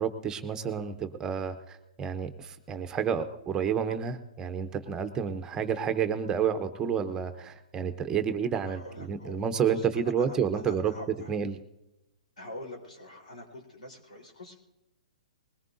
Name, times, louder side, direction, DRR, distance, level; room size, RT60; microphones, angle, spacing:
voice 1, 0.0-10.9 11.3-11.6, right 7 dB, 15° right, 8 dB, 0.8 m, -30 dB
voice 2, 8.6-11.3 12.4-14.5, left 1 dB, 90° left, 1 dB, 4.0 m, -45 dB
20.5 x 19.0 x 2.7 m, 0.94 s
hypercardioid pair, 140°, 4 cm